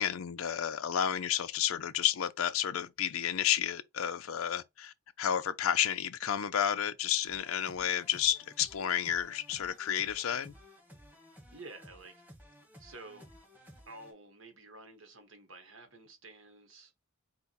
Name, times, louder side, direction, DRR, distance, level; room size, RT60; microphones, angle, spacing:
voice 1, 0.0-10.5, left 10 dB, 75° left, 0.5 m, -31 dB
sound 1, 7.3-14.1, equal, 10° right, 1.4 m, -56 dB
voice 2, 11.5-12.3 12.8-13.3 13.9-16.9, right 3 dB, 65° right, 1.3 m, -51 dB
4.5 x 2.2 x 4.1 m
head